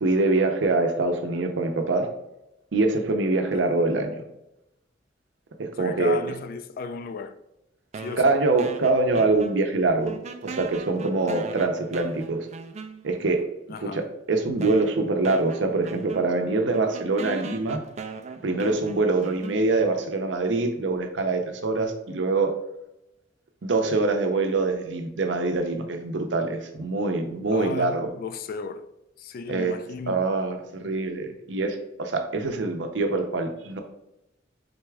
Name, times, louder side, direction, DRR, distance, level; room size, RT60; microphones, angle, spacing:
voice 1, 0.0-2.1 2.7-4.2 5.6-6.2 8.2-10.2 10.4-12.5 13.0-13.5 13.8-14.0 14.3-17.8 18.4-22.5 23.6-28.1 29.5-29.8 30.1-33.8, right 3 dB, 75° right, 0.6 m, -24 dB
voice 2, 5.8-7.4 8.0-8.3 13.7-14.1 27.5-28.9 29.2-30.2, left 5 dB, 50° left, 0.3 m, -35 dB
sound 1, 7.9-9.8 10.0-13.3 14.0-14.1 14.6-20.0, right 4 dB, 35° right, 0.3 m, -39 dB
4.1 x 3.4 x 3.3 m
head